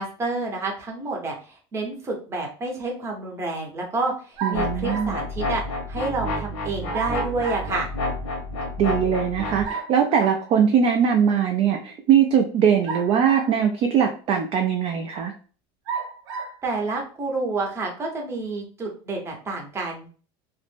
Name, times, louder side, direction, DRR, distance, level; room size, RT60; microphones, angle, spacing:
voice 1, 0.0-1.4 1.7-7.9 16.6-20.1, right 3 dB, 20° right, 0 dB, 0.7 m, -29 dB
voice 2, 4.4-5.1 8.8-15.3, right 8 dB, 35° right, 3 dB, 0.3 m, -21 dB
sound 1, 4.4-5.2 6.9-7.7 9.6-10.5 12.8-13.7 14.4-14.5 15.9-16.6, right 6 dB, 85° right, 0.7 m, -33 dB
sound 2, 4.5-9.7, left 1 dB, 90° left, 1.0 m, -29 dB
2.4 x 2.0 x 3.2 m, 0.39 s
cardioid pair, 150°, 14 cm